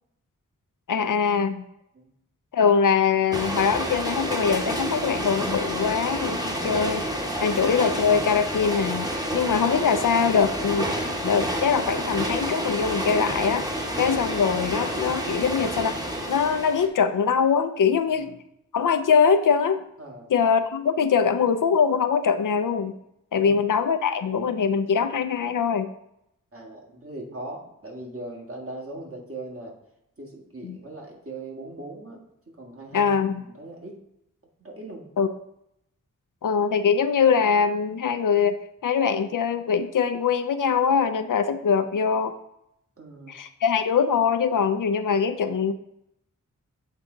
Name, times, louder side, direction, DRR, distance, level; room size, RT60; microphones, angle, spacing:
voice 1, 0.9-1.7 2.5-7.1 7.4-9.1 9.3-11.0 11.2-13.6 14.0-16.0 16.3-18.3 18.7-19.8 20.3-23.0 23.3-25.9 30.6-30.8 32.9-33.4 35.2-35.3 36.4-42.3 43.3-45.7, left 6 dB, 75° left, 10 dB, 0.5 m, -22 dB
sound 1, 3.3-16.9, equal, 10° right, 1.1 m, -29 dB
voice 2, 20.0-20.3 23.3-23.6 26.5-29.7 30.2-32.2 32.5-33.2 33.5-34.0 34.6-35.1 43.0-43.4, right 2 dB, 45° right, -1 dB, 1.7 m, -40 dB
7.4 x 3.5 x 3.8 m, 0.80 s
cardioid pair, 50°, 32 cm